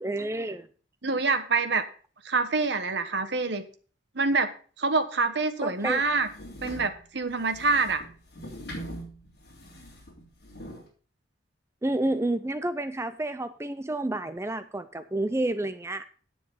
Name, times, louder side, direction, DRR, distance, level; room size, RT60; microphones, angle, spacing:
voice 1, 0.0-0.7 5.6-6.0 11.8-16.0, right 1 dB, 15° right, 0.5 m, -30 dB
voice 2, 1.0-1.9 2.2-3.6 4.1-4.5 4.8-6.3 6.6-8.0, right 4 dB, 65° right, 1.2 m, -26 dB
sound 1, 5.8-10.9, equal, 55° left, 3.2 m, -43 dB
10.0 x 6.9 x 5.4 m
head